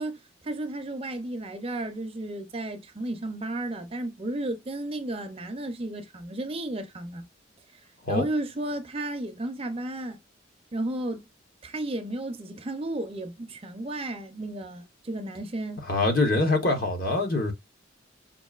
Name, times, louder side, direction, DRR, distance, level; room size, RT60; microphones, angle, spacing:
voice 1, 0.0-7.2 8.1-10.2 10.7-11.2 11.6-15.9, right 1 dB, 30° right, 0.5 m, -33 dB
voice 2, 15.9-17.5, left 2 dB, 50° left, 0.9 m, -24 dB
5.3 x 2.5 x 2.3 m
head